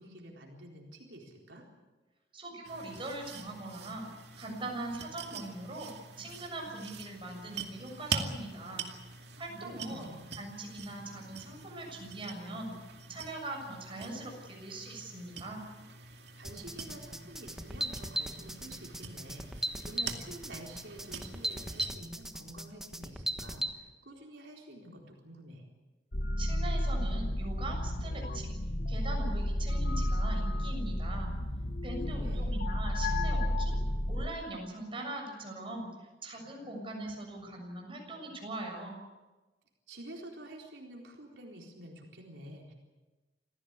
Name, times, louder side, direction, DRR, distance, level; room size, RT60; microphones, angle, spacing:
voice 1, 0.0-1.6 9.6-10.3 16.1-25.6 31.8-32.6 39.9-42.7, right 1 dB, 85° right, 0 dB, 4.1 m, -49 dB
voice 2, 2.3-4.1 4.4-5.9 6.2-8.9 9.4-10.1 10.4-12.7 13.1-15.6 26.4-28.5 28.9-31.3 31.8-33.8 34.1-39.0, right 2 dB, 30° right, 1 dB, 7.0 m, -41 dB
sound 1, 2.6-21.9, right 5 dB, 70° right, 2.4 m, -44 dB
sound 2, 16.4-23.7, right 1 dB, 5° right, 1.4 m, -37 dB
sound 3, 26.1-34.3, left 1 dB, 50° left, 1.4 m, -32 dB
27.0 x 16.0 x 8.2 m, 1.2 s
head